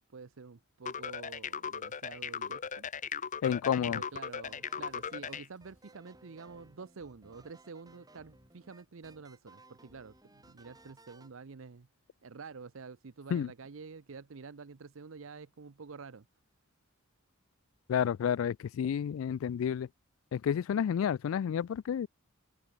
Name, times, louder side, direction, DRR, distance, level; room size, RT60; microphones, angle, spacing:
voice 1, 0.0-2.9 3.8-11.9 12.2-16.3, right 4 dB, 75° right, 0.7 m, -48 dB
sound 1, 0.8-5.5, left 7 dB, 40° left, 0.8 m, -38 dB
voice 2, 3.4-4.0 13.3-13.5 17.9-19.9 20.3-22.1, left 8 dB, 75° left, 0.3 m, -30 dB
sound 2, 4.4-11.3, right 2 dB, 20° right, 8.0 m, -60 dB
head